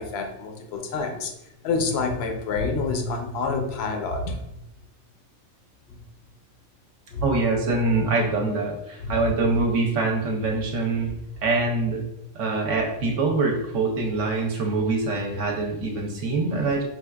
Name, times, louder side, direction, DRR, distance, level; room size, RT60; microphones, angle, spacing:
voice 1, 0.0-1.3 1.6-4.6 5.9-6.0 7.1-7.2 9.0-9.1, left 4 dB, 65° left, 4 dB, 0.7 m, -28 dB
voice 2, 7.2-11.1 11.4-12.0 12.3-16.8, right 3 dB, 65° right, 0 dB, 0.9 m, -24 dB
4.4 x 2.3 x 2.3 m, 0.87 s
omnidirectional pair, 1.5 m